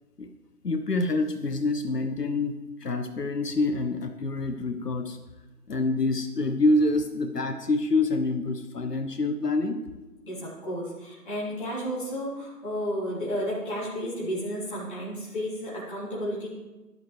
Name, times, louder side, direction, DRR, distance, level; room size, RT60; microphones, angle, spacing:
voice 1, 0.6-5.2 5.7-9.8, left 2 dB, 75° left, 7 dB, 1.0 m, -26 dB
voice 2, 10.2-16.5, equal, 30° left, -9 dB, 3.7 m, -32 dB
13.0 x 10.5 x 3.4 m, 1.1 s
figure-of-eight pair, 165°, 49 cm